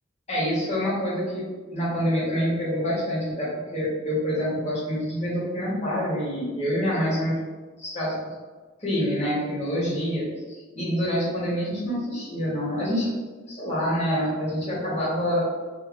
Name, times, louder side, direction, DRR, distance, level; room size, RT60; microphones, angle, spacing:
voice 1, 0.3-1.4 1.7-7.4 7.8-8.1 8.8-13.1 13.5-15.4, equal, 35° left, -7 dB, 1.1 m, -26 dB
3.1 x 2.6 x 2.5 m, 1.3 s
head